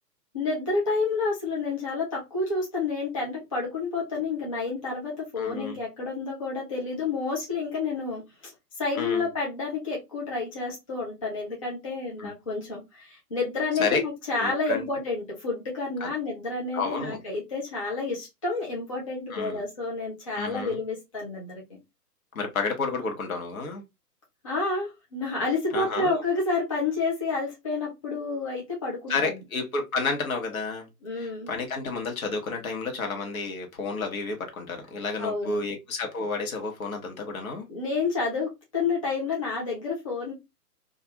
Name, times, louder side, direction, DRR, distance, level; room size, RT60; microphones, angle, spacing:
voice 1, 0.3-8.5 8.8-21.8 24.4-29.4 31.0-31.5 35.2-35.7 37.7-40.3, left 3 dB, 25° left, 0.4 m, -29 dB
voice 2, 5.4-5.8 9.0-9.3 12.2-12.3 13.8-14.0 14.4-14.9 16.0-16.1 16.7-17.2 19.3-19.6 20.3-20.8 22.3-23.8 25.7-26.2 29.1-30.9 31.1-37.7, left 4 dB, 60° left, 1.0 m, -31 dB
2.4 x 2.3 x 2.7 m
figure-of-eight pair, 125°, 48 cm